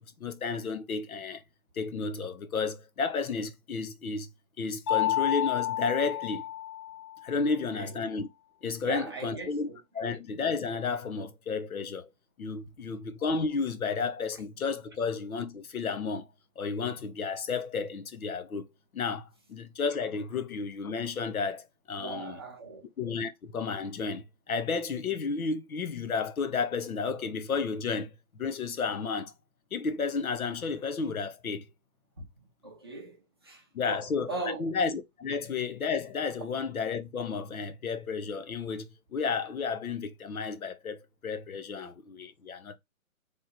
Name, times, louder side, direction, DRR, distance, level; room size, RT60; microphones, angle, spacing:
voice 1, 0.2-1.4 1.7-4.3 4.6-6.4 7.2-8.3 8.6-9.7 9.9-12.1 12.4-16.3 16.6-18.7 18.9-22.4 23.0-29.3 29.7-31.6 33.7-34.3 34.6-42.8, left 5 dB, 80° left, 1.1 m, -32 dB
Mallet percussion, 4.9-7.4, left 11 dB, 20° left, 1.2 m, -30 dB
voice 2, 8.8-10.1 22.0-22.8 32.2-32.3 32.6-33.2 33.4-34.8, right 2 dB, 20° right, 0.6 m, -39 dB
3.6 x 3.2 x 4.4 m
hypercardioid pair, 170°, 43 cm